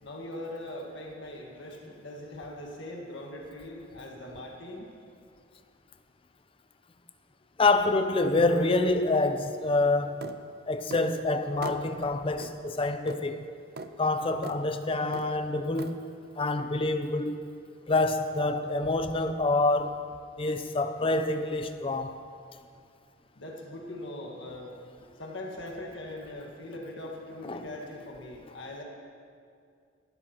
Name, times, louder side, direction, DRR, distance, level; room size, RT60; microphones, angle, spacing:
voice 1, 0.0-4.9 23.3-24.8 25.2-28.8, left 1 dB, 65° left, 1.6 m, -41 dB
voice 2, 7.6-10.2 10.7-13.4 14.0-16.0 16.4-17.4 17.9-20.0 20.4-22.1 27.4-27.6, left 2 dB, 25° left, 0.5 m, -26 dB
sound 1, 10.2-10.4 10.9-11.1 11.6-11.8 12.4-12.5 13.1-13.2 13.8-13.9 14.4-14.6 15.1-15.3 15.8-15.9, right 3 dB, 50° right, 0.5 m, -39 dB
18.0 x 12.5 x 2.9 m
head